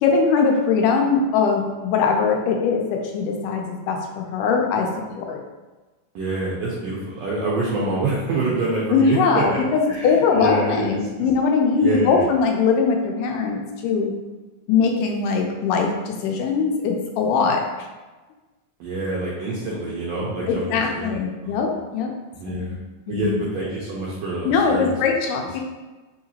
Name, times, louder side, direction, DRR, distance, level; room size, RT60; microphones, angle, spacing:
voice 1, 0.0-4.9 5.2-5.4 8.9-14.1 14.7-17.9 20.5-22.1 22.5-22.6 23.1-23.4 24.4-25.6, left 5 dB, 85° left, 2 dB, 2.2 m, -21 dB
voice 2, 6.1-9.6 9.9-11.1 11.8-12.3 18.8-21.1 21.4-21.6 22.4-22.8 23.1-24.9, right 2 dB, 80° right, -6 dB, 1.5 m, -26 dB
5.0 x 2.8 x 2.8 m, 1.2 s
omnidirectional pair, 3.7 m